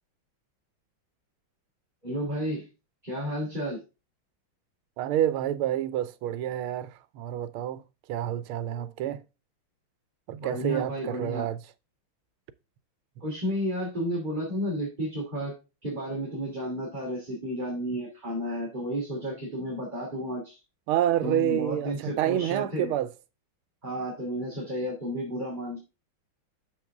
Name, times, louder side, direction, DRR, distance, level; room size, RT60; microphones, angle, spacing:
voice 1, 2.0-2.7 3.0-3.8 10.4-11.4 13.2-15.6 15.8-20.6 21.2-22.9 23.8-25.8, equal, 20° right, 2.7 m, -32 dB
voice 2, 5.0-7.8 8.1-9.2 10.3-11.6 20.9-23.1, right 11 dB, 90° right, 1.5 m, -28 dB
7.1 x 6.2 x 3.5 m
omnidirectional pair, 2.3 m